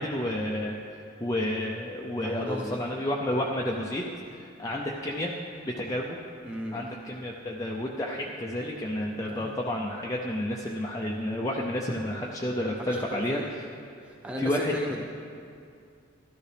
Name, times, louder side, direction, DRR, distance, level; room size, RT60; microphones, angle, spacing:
voice 1, 0.0-5.3 5.7-6.2 6.7-13.4 14.4-14.8, left 1 dB, 15° left, -2 dB, 0.5 m, -31 dB
voice 2, 2.2-2.8 6.4-6.8 9.2-9.5 12.7-13.5 14.0-15.0, equal, 5° right, -1 dB, 1.1 m, -36 dB
14.0 x 12.5 x 3.4 m, 2.4 s
head